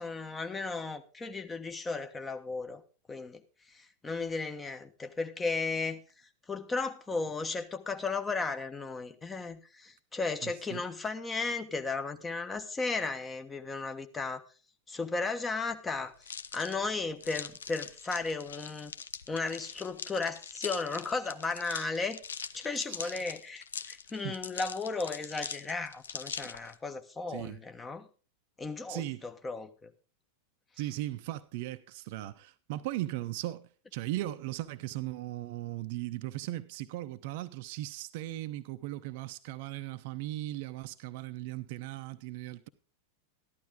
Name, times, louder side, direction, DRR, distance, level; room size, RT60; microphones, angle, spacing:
voice 1, 0.0-2.8 3.1-3.4 3.7-6.0 6.5-14.4 14.9-16.1 16.5-18.9 19.3-22.2 22.5-28.1 28.6-29.9, left 4 dB, 15° left, 1.2 m, -35 dB
voice 2, 10.4-10.8 22.9-23.2 24.2-24.3 27.3-27.6 28.9-29.2 30.8-42.7, right 15 dB, 50° right, 0.7 m, -38 dB
Climbing gear sound, 16.2-26.7, left 6 dB, 70° left, 0.6 m, -42 dB
14.0 x 11.5 x 3.7 m
figure-of-eight pair, 90°, 0 cm